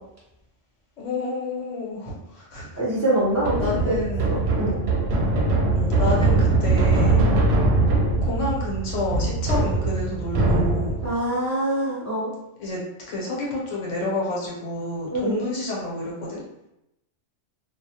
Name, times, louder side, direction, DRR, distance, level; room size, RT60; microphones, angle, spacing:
voice 1, 1.0-2.8 3.6-4.3 5.7-7.2 8.2-10.9 12.6-16.4, left 2 dB, 80° left, -4 dB, 1.1 m, -29 dB
voice 2, 2.8-3.6 3.9-4.0 4.3-4.8 11.0-12.3 15.1-15.5, right 1 dB, 25° left, -7 dB, 0.4 m, -24 dB
sound 1, 3.4-11.2, right 2 dB, 65° right, 0.7 m, -21 dB
2.3 x 2.1 x 2.7 m, 0.87 s
omnidirectional pair, 1.2 m